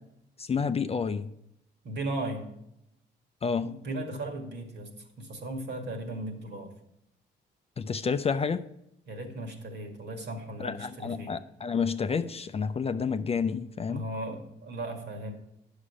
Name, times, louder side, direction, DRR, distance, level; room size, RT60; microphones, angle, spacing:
voice 1, 0.4-1.3 3.4-3.7 7.8-8.6 10.6-14.0, left 5 dB, 30° left, 0.4 m, -29 dB
voice 2, 1.8-2.5 3.6-4.9 5.2-6.7 9.1-11.4 13.9-15.3, right 1 dB, 60° right, 2.0 m, -36 dB
9.7 x 6.5 x 4.9 m
cardioid pair, 90°, 20 cm